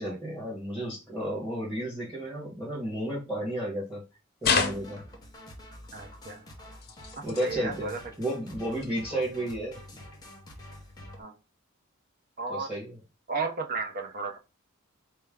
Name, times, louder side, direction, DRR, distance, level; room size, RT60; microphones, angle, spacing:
voice 1, 0.0-4.0 4.4-5.0 7.2-10.0 12.5-13.0, right 1 dB, 5° right, -4 dB, 1.3 m, -33 dB
sound 1, 4.4-5.3 6.8-7.5 8.8-8.9 9.8-9.9, left 5 dB, 45° left, 0.6 m, -29 dB
sound 2, 4.5-11.2, left 1 dB, 20° left, 0.8 m, -48 dB
voice 2, 5.9-6.5 7.2-8.0 9.1-9.2 11.2-11.4 12.4-12.7 13.3-14.4, right 4 dB, 40° right, 4 dB, 0.7 m, -34 dB
4.4 x 2.2 x 3.6 m, 0.28 s
head